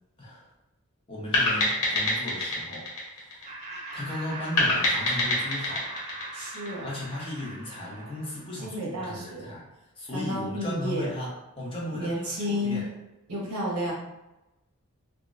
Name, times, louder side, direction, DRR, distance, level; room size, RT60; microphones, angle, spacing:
voice 1, 0.2-0.5 1.1-3.6 3.9-5.9 6.8-9.7 10.0-12.9, left 1 dB, 25° left, -5 dB, 0.8 m, -36 dB
sound 1, 1.3-3.9 4.6-7.1, left 2 dB, 80° left, 0.9 m, -26 dB
Laughter, 3.4-8.7, right 2 dB, 30° right, 0.6 m, -41 dB
voice 2, 6.3-6.9 8.6-9.5 10.1-11.1 11.9-12.8 13.3-13.9, left 1 dB, 90° right, -3 dB, 1.0 m, -31 dB
3.7 x 2.0 x 2.4 m, 0.96 s
head